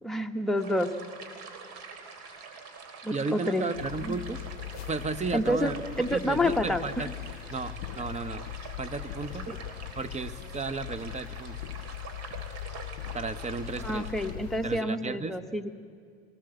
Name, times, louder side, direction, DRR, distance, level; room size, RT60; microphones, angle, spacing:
voice 1, 0.0-0.9 3.0-3.7 4.0-4.2 5.3-7.0 9.5-9.6 13.8-15.7, left 1 dB, ahead, 3 dB, 1.4 m, -28 dB
sound 1, 0.6-14.3, right 5 dB, 55° right, 3.6 m, -45 dB
voice 2, 3.1-4.4 4.9-5.7 6.1-7.1 7.5-8.4 8.8-9.5 10.0-11.6 13.1-14.1 14.6-15.4, right 4 dB, 20° right, 13 dB, 1.1 m, -34 dB
sound 2, 3.7-14.8, left 15 dB, 75° left, 0.6 m, -40 dB
21.5 x 19.0 x 7.9 m, 2.3 s
hypercardioid pair, 80°, 31 cm